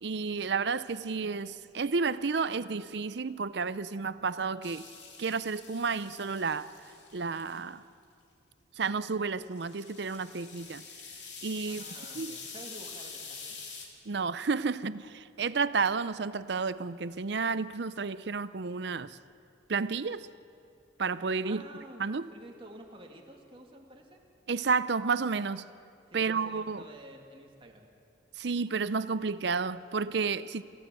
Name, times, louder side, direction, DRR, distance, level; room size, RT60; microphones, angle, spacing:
voice 1, 0.0-4.9 5.2-6.7 7.1-7.8 8.8-10.8 11.4-11.8 12.2-12.4 14.1-19.2 19.7-20.3 21.0-21.6 22.0-22.3 24.5-25.7 26.1-26.8 28.4-30.6, right 4 dB, 60° right, 15 dB, 0.6 m, -31 dB
sound 1, 4.6-7.6 9.4-13.9, left 5 dB, 70° left, 3.1 m, -46 dB
voice 2, 11.7-13.6 21.4-22.0 22.3-24.2 26.1-27.9, right 1 dB, 30° right, 1 dB, 2.5 m, -50 dB
28.0 x 16.0 x 7.7 m, 2.5 s
head